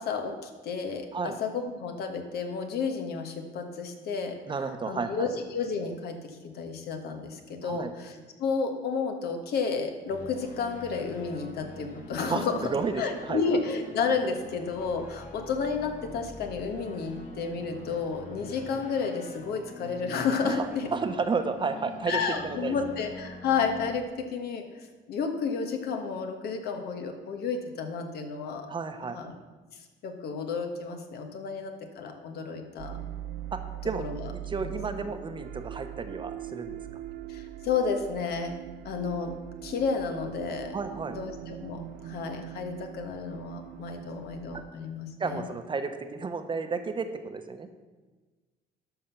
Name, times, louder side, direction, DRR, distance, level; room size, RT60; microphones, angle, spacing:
voice 1, 0.0-4.4 4.9-8.1 8.4-12.7 13.0-20.9 22.1-28.7 29.0-29.3 30.0-33.0 34.0-34.3 34.6-34.8 37.3-38.5 38.8-39.3 39.6-40.7 41.1-45.4, left 5 dB, 70° left, 5 dB, 1.4 m, -31 dB
voice 2, 4.5-5.3 7.6-7.9 12.2-13.4 20.4-22.8 28.7-29.2 33.5-33.6 33.8-34.0 34.5-36.8 40.7-41.2 44.5-44.6 45.2-47.7, right 4 dB, 30° right, 8 dB, 0.9 m, -32 dB
sound 1, 10.1-24.0, left 2 dB, 50° left, 1.6 m, -45 dB
sound 2, 32.8-44.6, right 12 dB, 70° right, 0.4 m, -41 dB
12.0 x 5.9 x 5.8 m, 1.3 s
cardioid pair, 110°, 17 cm